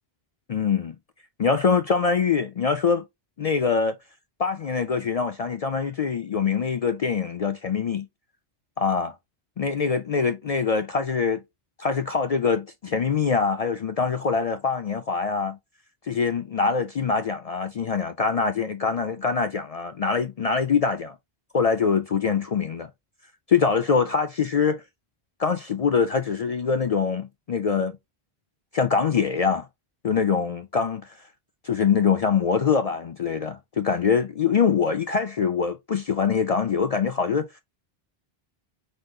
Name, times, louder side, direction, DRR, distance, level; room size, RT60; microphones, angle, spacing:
voice 1, 0.5-1.0 1.4-3.0 3.4-4.0 4.4-8.1 8.8-9.1 9.6-11.4 11.8-15.6 16.1-21.2 21.5-22.9 23.5-24.8 25.4-28.0 28.7-29.7 30.0-31.2 31.6-37.5, left 5 dB, 50° left, 0.4 m, -24 dB
5.0 x 4.1 x 2.3 m
omnidirectional pair, 1.0 m